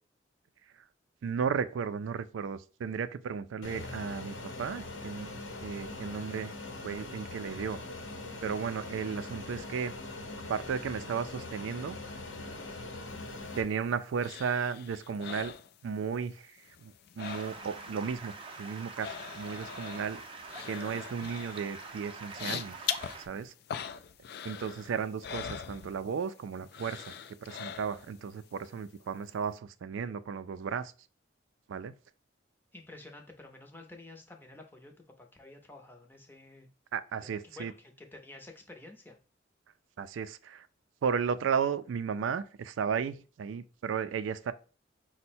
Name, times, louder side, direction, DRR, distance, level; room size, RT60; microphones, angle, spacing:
voice 1, 1.2-5.3 5.6-6.5 6.8-7.8 8.4-9.9 10.5-12.0 13.6-15.5 15.8-20.2 20.7-22.7 23.3-23.5 24.4-27.2 27.4-30.9 31.7-31.9 36.9-37.7 40.0-40.7 41.0-44.5, right 6 dB, 85° right, 0.3 m, -34 dB
Fixed-wing aircraft airplane, 3.6-13.6, left 2 dB, 75° left, 0.8 m, -42 dB
sound 1, 13.3-16.3 16.6-17.9 18.2-26.3 26.7-28.2 28.6-28.7, left 8 dB, 55° left, 0.3 m, -42 dB
Stream, 17.2-23.3, right 3 dB, 30° right, 0.5 m, -45 dB
voice 2, 32.7-36.7 37.2-39.2, left 2 dB, 10° left, 0.6 m, -50 dB
5.3 x 2.1 x 4.2 m
head